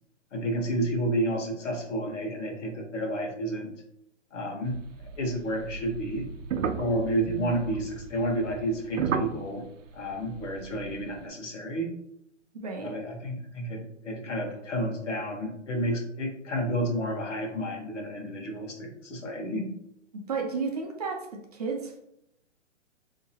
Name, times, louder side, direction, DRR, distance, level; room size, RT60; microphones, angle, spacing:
voice 1, 0.3-3.7 4.3-4.8 5.2-6.3 6.8-9.6 9.9-11.9 12.8-19.7, right 1 dB, 70° left, 2 dB, 1.2 m, -30 dB
sound 1, 4.6-11.2, right 6 dB, 90° right, 0.5 m, -35 dB
voice 2, 12.5-12.9 20.1-22.0, right 4 dB, 35° right, 1 dB, 0.5 m, -33 dB
3.4 x 2.8 x 2.8 m, 0.77 s
hypercardioid pair, 150°, 37 cm